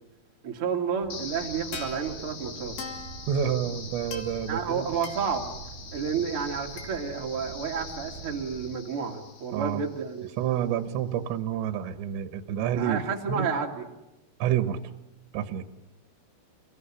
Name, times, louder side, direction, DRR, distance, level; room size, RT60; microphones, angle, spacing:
voice 1, 0.4-2.8 4.5-5.5 5.9-10.3 12.8-13.7, right 6 dB, 35° right, 1 dB, 2.4 m, -30 dB
sound 1, 1.0-8.8, right 5 dB, 55° right, 2.4 m, -45 dB
sound 2, 1.1-10.1, left 5 dB, 55° left, 4.1 m, -42 dB
voice 2, 3.3-4.9 9.5-9.8 10.4-13.0 13.3-13.5 14.4-14.8 15.3-15.6, right 9 dB, 75° right, 9 dB, 3.2 m, -28 dB
29.5 x 17.5 x 9.9 m, 0.95 s
omnidirectional pair, 5.7 m